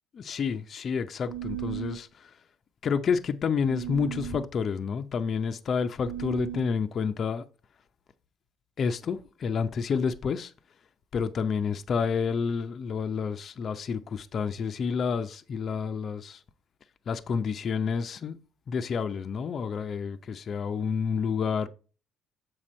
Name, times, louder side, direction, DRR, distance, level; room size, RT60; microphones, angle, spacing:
voice 1, 0.1-2.1 2.8-7.4 8.8-10.5 11.1-16.4 17.1-18.4 18.7-21.7, left 6 dB, 50° left, 0.6 m, -29 dB
sound 1, 1.3-2.0 3.6-4.5 6.0-6.8, right 11 dB, 75° right, 0.4 m, -36 dB
7.4 x 4.8 x 4.2 m
hypercardioid pair, 65°, 0 cm